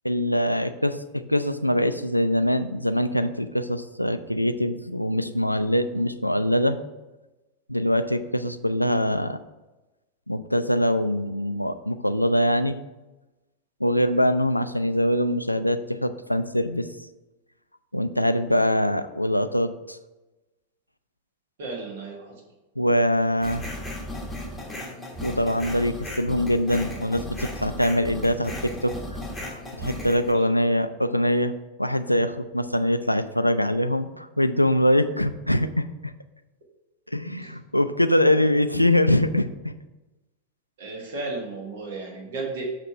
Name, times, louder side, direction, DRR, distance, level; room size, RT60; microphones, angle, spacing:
voice 1, 0.0-1.0 1.3-6.8 7.7-9.4 10.3-12.8 13.8-16.9 17.9-20.0 22.8-23.6 25.2-28.9 29.5-31.5 31.8-36.1 37.1-39.7, left 1 dB, 90° left, 10 dB, 0.3 m, -23 dB
voice 2, 21.6-22.4 30.3-30.5 37.4-37.5 40.8-42.6, right 3 dB, 55° right, -1 dB, 1.4 m, -34 dB
sound 1, 23.4-30.3, left 1 dB, 5° left, 1.3 m, -35 dB
6.7 x 3.2 x 5.9 m, 1.1 s
figure-of-eight pair, 90°, 0 cm